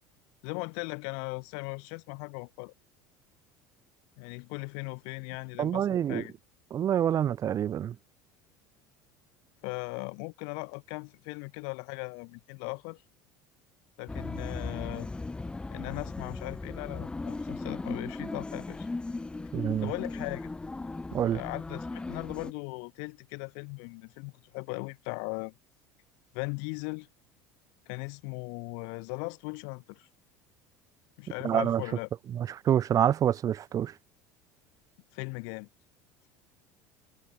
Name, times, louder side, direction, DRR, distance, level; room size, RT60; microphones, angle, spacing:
voice 1, 0.4-2.7 4.2-6.3 9.6-13.0 14.0-15.1 15.7-18.9 19.8-20.5 21.3-25.5 26.3-27.1 27.9-30.1 31.2-32.1 35.1-35.7, left 40 dB or more, 70° left, 1.0 m, -38 dB
voice 2, 5.6-6.2 6.7-8.0 19.5-19.9 21.1-21.4 31.4-31.8 32.3-33.9, right 10 dB, 40° right, 0.6 m, -27 dB
sound 1, 14.1-22.5, left 3 dB, 10° left, 0.3 m, -37 dB
hypercardioid pair, 85°, 9 cm